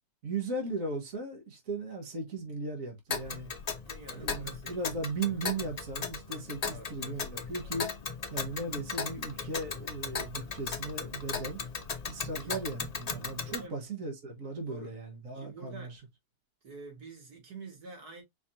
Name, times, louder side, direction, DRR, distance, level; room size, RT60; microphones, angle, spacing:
voice 1, 0.2-3.5 4.1-7.9 8.3-11.6 12.1-16.0, right 3 dB, 60° right, 2.0 m, -37 dB
Tick, 3.1-13.7, left 5 dB, 45° left, 0.5 m, -37 dB
voice 2, 3.9-5.0 5.3-5.4 6.7-6.9 12.3-12.5 13.5-13.8 14.6-14.9 15.3-16.0 16.6-18.2, right 3 dB, 90° right, 2.5 m, -47 dB
5.1 x 3.4 x 2.8 m
omnidirectional pair, 1.6 m